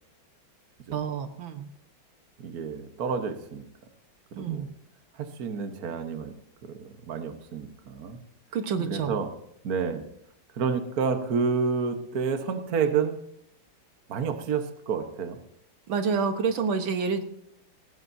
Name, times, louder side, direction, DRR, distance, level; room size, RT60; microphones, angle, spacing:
voice 1, 0.9-1.7 4.4-4.7 8.5-9.2 15.9-17.2, right 5 dB, 75° right, 8 dB, 1.9 m, -28 dB
voice 2, 2.4-3.6 4.3-4.7 5.1-6.3 6.7-8.2 8.9-9.3 9.6-10.0 10.5-13.2 14.1-15.4, right 5 dB, 50° right, 7 dB, 1.6 m, -29 dB
18.5 x 15.0 x 2.7 m, 0.76 s
omnidirectional pair, 2.2 m